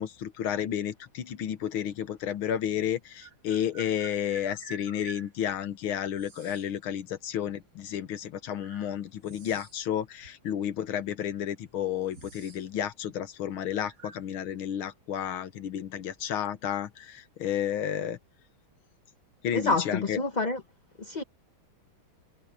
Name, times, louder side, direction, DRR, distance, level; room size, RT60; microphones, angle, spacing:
voice 1, 0.0-18.2 19.4-20.2, left 10 dB, 85° left, 2.0 m, -32 dB
sound 1, 2.0-2.1 3.2-5.3 6.1-6.7 7.8-7.9 8.5-9.9 10.2-10.3 11.2-11.3 11.5-12.6 12.9-13.2 13.7-14.2, right 3 dB, 35° right, 2.1 m, -49 dB
voice 2, 19.5-20.6 21.0-21.2, left 3 dB, 30° left, 0.9 m, -28 dB
omnidirectional pair, 2.2 m